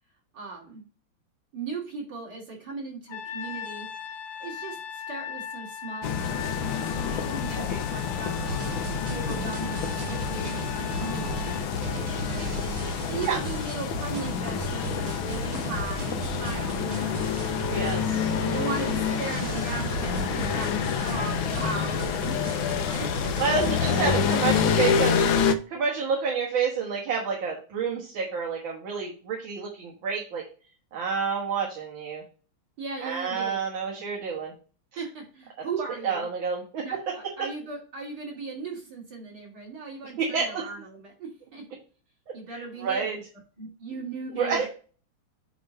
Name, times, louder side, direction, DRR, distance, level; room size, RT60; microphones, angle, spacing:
voice 1, 0.3-0.8 1.5-3.9 4.4-8.7 9.1-17.1 18.4-22.5 22.9-23.1 32.8-33.6 35.0-36.3 36.8-41.6 42.3-43.2 43.6-44.7, right 4 dB, 50° right, -3 dB, 3.6 m, -37 dB
Trumpet, 3.1-11.7, left 8 dB, 50° left, 1.3 m, -39 dB
sound 1, 6.0-25.6, left 7 dB, 75° left, 1.4 m, -28 dB
sound 2, 8.4-24.7, right 3 dB, 85° right, 2.2 m, -36 dB
voice 2, 17.7-18.3 23.4-30.4 30.9-32.2 33.0-34.5 34.9-35.0 36.0-37.1 40.2-40.7 42.5-43.2 44.4-44.6, right 5 dB, 65° right, -1 dB, 2.1 m, -29 dB
8.5 x 3.2 x 5.4 m, 0.38 s
omnidirectional pair, 2.4 m